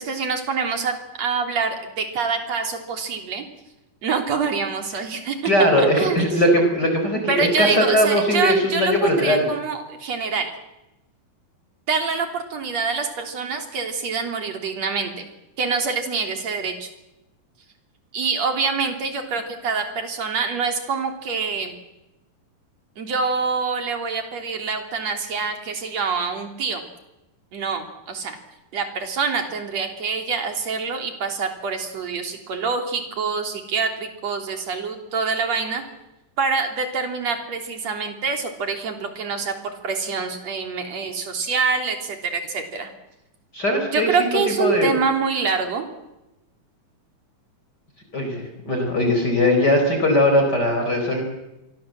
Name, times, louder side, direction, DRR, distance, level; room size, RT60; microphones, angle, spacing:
voice 1, 0.0-3.4 4.0-5.5 5.8-6.2 7.3-10.5 11.9-15.3 15.6-16.9 18.1-21.7 23.0-26.8 27.5-28.4 28.7-35.8 36.4-42.9 43.9-45.9, right 5 dB, 50° right, 5 dB, 4.2 m, -26 dB
voice 2, 5.4-9.5 43.5-44.9 48.1-51.2, left 1 dB, 25° left, 3 dB, 4.8 m, -20 dB
28.0 x 23.0 x 7.7 m, 0.96 s
omnidirectional pair, 4.1 m